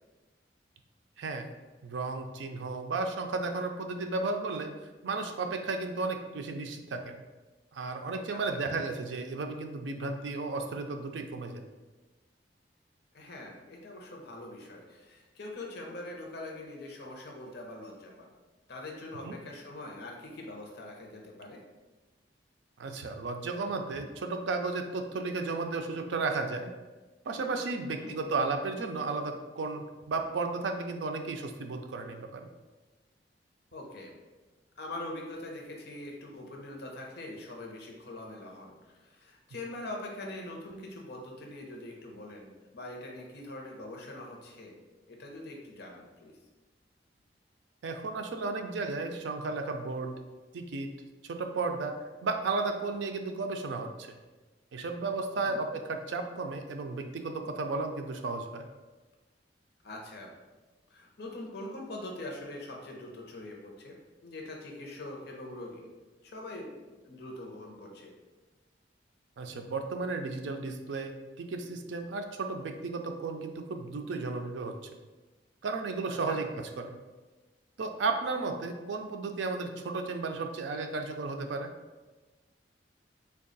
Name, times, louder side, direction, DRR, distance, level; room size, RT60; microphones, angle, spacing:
voice 1, 1.2-1.5 1.8-7.1 7.7-11.6 19.2-19.4 22.8-26.7 27.3-32.5 47.8-50.1 50.5-50.9 51.2-54.1 54.7-58.7 69.4-74.8 75.6-77.0 77.8-81.7, right 3 dB, 85° right, 5 dB, 0.4 m, -34 dB
voice 2, 8.3-8.6 13.1-18.3 18.7-21.6 27.8-28.1 33.7-34.1 34.8-44.8 45.1-46.3 55.4-55.6 59.8-60.4 60.9-64.0 64.2-65.9 66.2-68.1 76.3-76.4, left 1 dB, 65° left, 0 dB, 0.7 m, -43 dB
3.5 x 2.3 x 3.8 m, 1.2 s
head